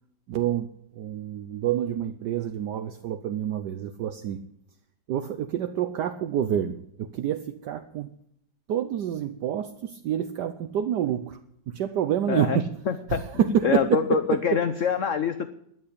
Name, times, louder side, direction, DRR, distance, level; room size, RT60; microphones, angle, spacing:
voice 1, 0.3-0.7 1.0-4.4 5.1-8.1 8.7-11.4 11.7-12.7 13.1-14.6, right 10 dB, 70° right, 9 dB, 1.3 m, -27 dB
voice 2, 12.3-13.2 13.6-15.5, left 7 dB, 55° left, 10 dB, 0.9 m, -25 dB
13.0 x 9.8 x 8.5 m, 0.72 s
omnidirectional pair, 2.0 m